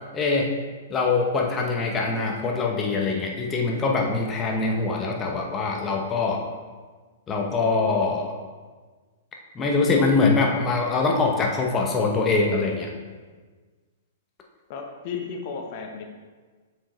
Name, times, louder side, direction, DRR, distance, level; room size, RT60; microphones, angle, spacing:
voice 1, 0.1-0.5 0.9-6.4 7.3-8.3 9.5-12.9, left 3 dB, 20° left, 0 dB, 0.8 m, -23 dB
voice 2, 14.7-16.0, left 5 dB, 50° left, 2 dB, 0.9 m, -34 dB
7.1 x 4.8 x 3.1 m, 1.4 s
hypercardioid pair, 115°, 0 cm